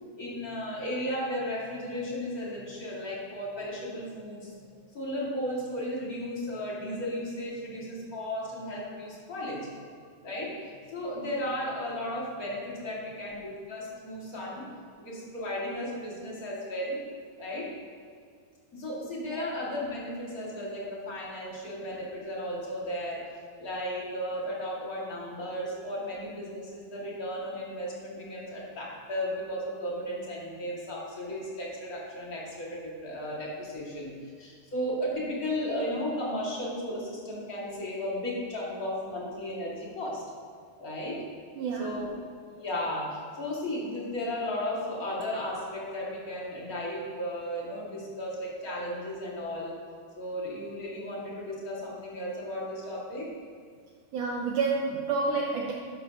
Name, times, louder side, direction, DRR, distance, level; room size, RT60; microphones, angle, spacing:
voice 1, 0.2-4.6 4.9-9.7 10.2-13.4 13.7-17.0 17.4-17.7 18.7-23.3 23.6-40.2 40.8-41.2 41.8-42.1 42.5-49.7 50.2-53.3, left 1 dB, 30° left, -5 dB, 1.7 m, -35 dB
voice 2, 41.6-42.0 54.1-55.7, right 4 dB, 85° right, -1 dB, 1.8 m, -29 dB
13.0 x 11.5 x 2.9 m, 2.1 s
omnidirectional pair, 4.6 m